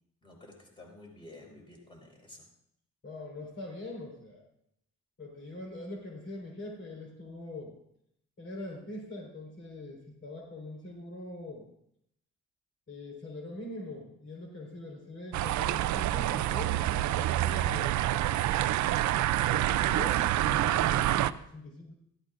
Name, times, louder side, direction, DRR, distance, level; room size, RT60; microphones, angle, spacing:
voice 1, 0.2-2.4, left 2 dB, 15° left, 0 dB, 4.7 m, -51 dB
voice 2, 3.0-4.4 5.2-7.8 8.4-11.7 12.9-18.2 19.5-21.9, left 2 dB, 45° left, -2 dB, 4.4 m, -43 dB
sound 1, 15.3-21.3, right 14 dB, 70° right, 0.5 m, -27 dB
17.5 x 14.5 x 2.5 m, 0.74 s
cardioid pair, 90°, 30 cm